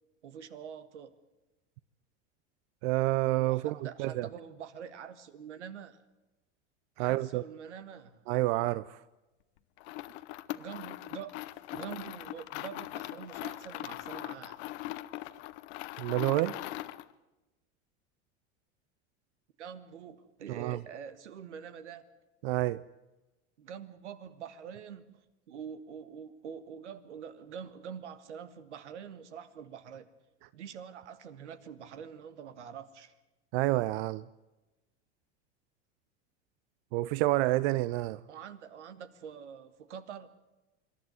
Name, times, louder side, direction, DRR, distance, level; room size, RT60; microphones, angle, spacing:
voice 1, 0.2-1.1 3.3-6.0 7.0-8.3 10.5-11.3 11.7-14.6 19.6-22.0 23.6-25.2 25.5-30.1 30.5-33.1 38.3-40.3, right 8 dB, 90° right, 1.6 m, -45 dB
voice 2, 2.8-4.3 7.0-7.4 8.3-9.0 16.0-16.6 20.5-20.8 22.4-22.8 33.5-34.2 36.9-38.2, right 18 dB, 65° right, 0.6 m, -29 dB
sound 1, 9.8-17.1, left 16 dB, 70° left, 1.0 m, -41 dB
26.0 x 11.5 x 9.5 m
hypercardioid pair, 95°, 34 cm